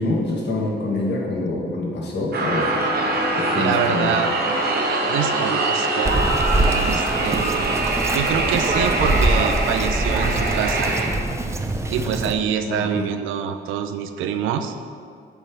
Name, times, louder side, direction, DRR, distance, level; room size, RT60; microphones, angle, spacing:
voice 1, 0.0-2.8 3.4-4.1 12.7-13.1, left 2 dB, 60° left, -2 dB, 1.5 m, -25 dB
sound 1, 2.3-11.1, right 2 dB, 50° right, 1.1 m, -23 dB
voice 2, 3.6-4.3 5.0-6.3 6.7-7.8 8.1-11.0 11.9-14.7, right 8 dB, 90° right, 8 dB, 0.5 m, -25 dB
Bird vocalization bird call bird song, 6.1-12.3, right 2 dB, 15° right, 0.4 m, -24 dB
6.8 x 3.3 x 6.0 m, 2.2 s
cardioid pair, 90°, 20 cm